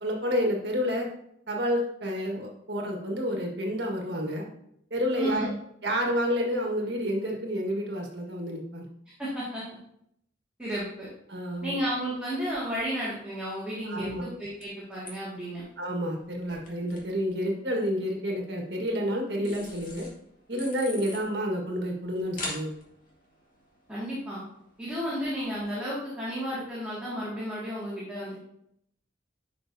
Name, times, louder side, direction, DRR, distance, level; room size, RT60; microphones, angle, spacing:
voice 1, 0.0-1.1 1.5-4.4 4.9-5.5 5.8-8.8 11.3-11.7 13.9-14.2 15.8-20.1 20.5-22.7, equal, 60° right, 0 dB, 1.6 m, -29 dB
voice 2, 5.2-5.6 9.2-9.6 10.6-11.1 11.6-15.6 23.9-24.4 24.8-28.4, equal, 5° right, -9 dB, 1.9 m, -32 dB
sound 1, 11.5-25.6, left 2 dB, 45° left, 2.0 m, -47 dB
11.0 x 5.7 x 2.7 m, 0.74 s
head